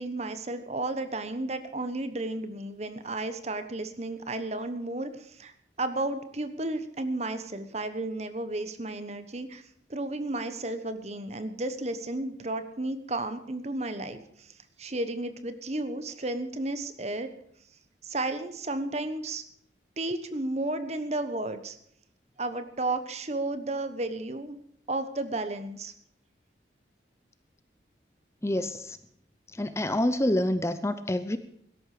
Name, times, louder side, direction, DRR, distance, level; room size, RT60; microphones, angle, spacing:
voice 1, 0.0-5.5 5.8-9.6 9.9-14.5 14.8-17.3 18.0-19.4 20.0-21.8 22.4-24.6 24.9-25.9, right 2 dB, 35° right, 10 dB, 1.1 m, -33 dB
voice 2, 28.4-29.0 29.5-31.4, left 1 dB, 15° left, 11 dB, 0.6 m, -27 dB
17.0 x 13.5 x 5.0 m, 0.68 s
head